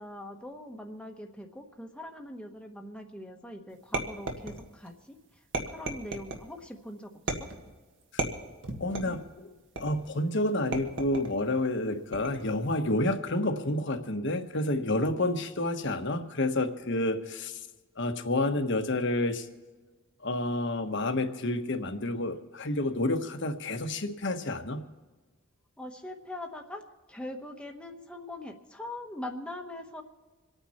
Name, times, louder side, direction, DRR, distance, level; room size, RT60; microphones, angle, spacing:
voice 1, 0.0-7.1 7.4-7.5 25.8-30.0, left 1 dB, 5° left, 3 dB, 1.1 m, -42 dB
sound 1, 3.9-4.9 5.5-6.5 7.3-7.7 8.2-9.2 9.8-10.2 10.7-11.4 12.1-12.6, right 2 dB, 55° right, 1.7 m, -34 dB
voice 2, 8.8-9.5 9.8-17.6 18.0-19.5 20.2-24.8, left 1 dB, 55° left, 7 dB, 1.3 m, -29 dB
27.5 x 9.2 x 4.3 m, 1.3 s
head